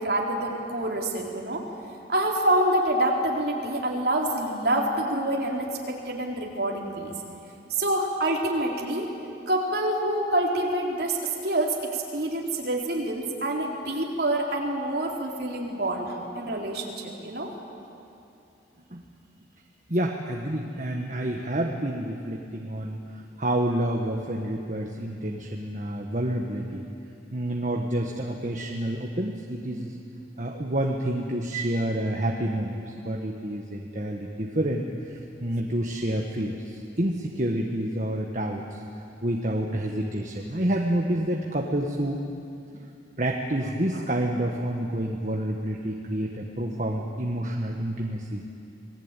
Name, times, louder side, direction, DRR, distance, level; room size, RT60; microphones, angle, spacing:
voice 1, 0.0-1.6 2.1-7.1 7.7-9.1 9.5-17.5, right 1 dB, 60° right, -1 dB, 3.9 m, -27 dB
voice 2, 19.9-23.0 23.4-26.9 27.3-29.9 30.4-42.2 42.7-42.9 43.2-48.4, right 1 dB, 45° right, 0 dB, 1.6 m, -29 dB
27.5 x 19.5 x 9.2 m, 2.7 s
head